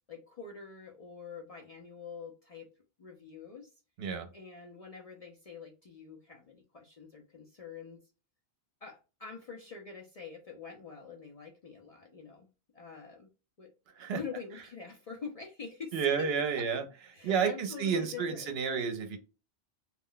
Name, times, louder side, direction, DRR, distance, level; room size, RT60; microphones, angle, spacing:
voice 1, 0.1-2.7 3.0-3.7 4.3-8.0 8.8-12.5 12.7-13.3 13.6-13.7 14.1-16.3 16.6-16.7 17.1-18.5, left 5 dB, 50° left, 0 dB, 0.4 m, -45 dB
voice 2, 15.9-16.8 17.2-19.2, right 6 dB, 70° right, 7 dB, 0.8 m, -30 dB
2.3 x 2.1 x 3.7 m, 0.32 s
omnidirectional pair, 1.1 m